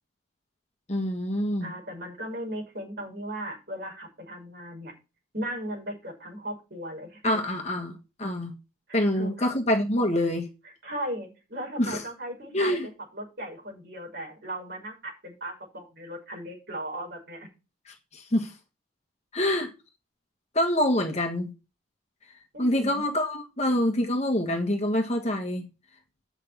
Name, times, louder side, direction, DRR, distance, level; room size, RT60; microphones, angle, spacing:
voice 1, 0.9-1.7 7.2-8.5 8.9-10.5 11.8-12.0 12.5-12.9 17.9-18.5 19.3-19.7 20.5-21.5 22.6-25.7, left 1 dB, 35° left, 1.6 m, -26 dB
voice 2, 1.6-4.9 5.3-7.2 8.9-9.3 10.8-12.8 13.1-17.5 22.5-23.0, right 1 dB, 50° right, 6.2 m, -37 dB
8.5 x 6.5 x 7.4 m
head